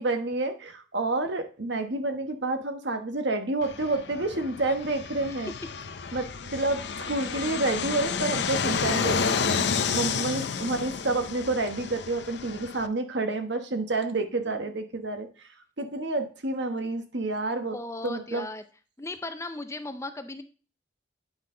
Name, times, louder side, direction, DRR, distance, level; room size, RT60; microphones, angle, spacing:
voice 1, 0.0-5.5 6.1-9.6 9.9-15.5 15.8-17.8 18.0-18.4, right 2 dB, 60° right, 7 dB, 1.2 m, -29 dB
Fixed-wing aircraft airplane, 3.6-12.9, left 6 dB, 60° left, 0.6 m, -30 dB
voice 2, 17.7-18.6 19.0-20.4, left 2 dB, 15° left, 9 dB, 0.4 m, -37 dB
9.5 x 5.6 x 3.7 m, 0.37 s
head